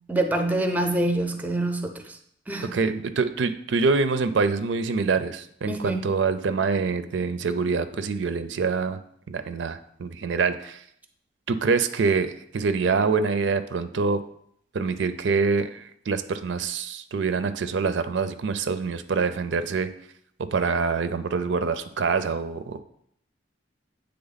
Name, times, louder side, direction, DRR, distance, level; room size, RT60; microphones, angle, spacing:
voice 1, 0.1-2.2 2.5-2.8 5.7-6.0, right 1 dB, 10° right, 0.5 m, -26 dB
voice 2, 2.7-9.0 9.3-10.8 11.5-14.2 14.7-19.9 20.5-22.8, right 4 dB, 80° right, 0.4 m, -25 dB
7.8 x 3.4 x 4.0 m
head